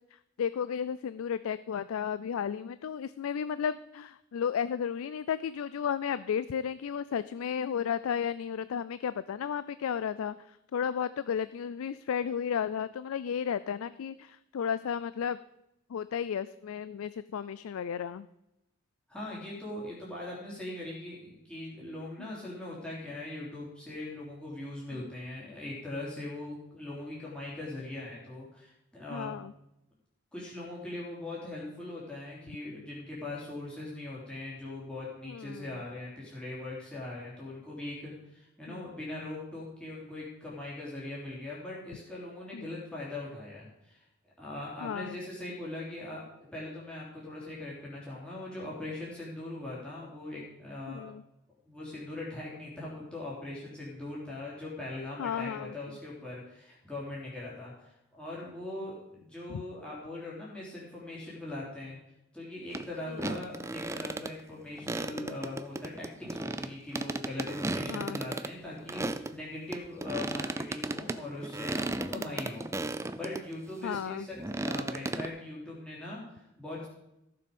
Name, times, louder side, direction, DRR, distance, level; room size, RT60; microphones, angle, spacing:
voice 1, 0.4-15.4 15.9-18.2 22.2-22.5 24.9-25.1 29.1-29.5 35.3-35.7 38.7-38.9 42.5-42.7 44.8-45.2 50.9-51.2 55.2-55.7 59.5-59.6 63.1-63.3 67.9-68.2 72.2-72.4 73.8-74.3, left 7 dB, 85° left, 15 dB, 0.4 m, -33 dB
voice 2, 19.1-29.4 30.3-51.0 51.6-62.0 62.3-76.9, left 2 dB, 5° left, -7 dB, 3.2 m, -41 dB
sound 1, 62.7-62.9 63.1-64.3 64.8-69.3 69.7-73.4 73.9-75.3, right 2 dB, 15° right, 0.4 m, -35 dB
15.0 x 6.8 x 5.3 m, 0.86 s
head